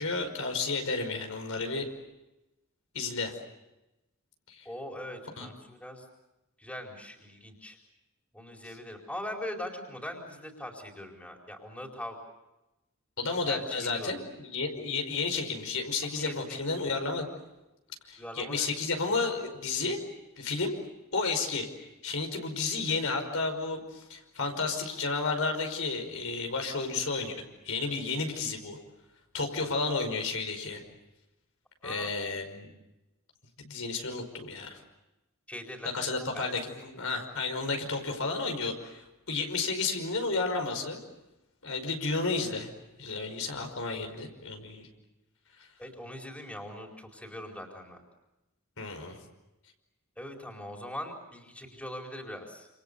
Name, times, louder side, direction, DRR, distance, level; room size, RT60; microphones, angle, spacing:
voice 1, 0.0-1.9 2.9-3.3 4.5-4.7 5.4-5.5 13.2-17.3 18.1-20.0 20.4-20.7 21.1-21.7 22.0-28.8 29.3-30.8 31.8-32.7 33.6-34.8 35.9-41.0 41.6-42.7 43.0-44.9 48.8-49.2, left 3 dB, 70° left, 4 dB, 5.3 m, -32 dB
voice 2, 4.6-6.1 6.6-7.8 8.3-12.2 13.4-14.1 16.1-16.5 18.2-18.7 31.8-32.1 35.5-36.1 36.3-36.4 45.8-48.0 50.2-52.7, left 1 dB, 5° left, 1 dB, 4.5 m, -41 dB
28.5 x 28.0 x 6.9 m, 0.98 s
head